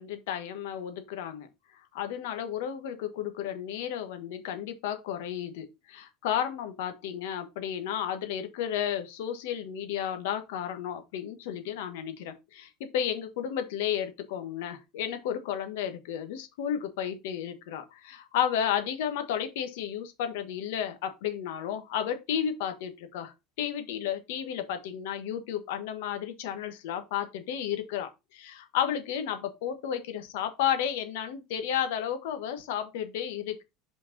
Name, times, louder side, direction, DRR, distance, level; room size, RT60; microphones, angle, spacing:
voice 1, 0.0-1.5 1.7-33.6, left 9 dB, 85° left, 1.5 m, -32 dB
5.5 x 4.5 x 5.3 m
cardioid pair, 155°, 0 cm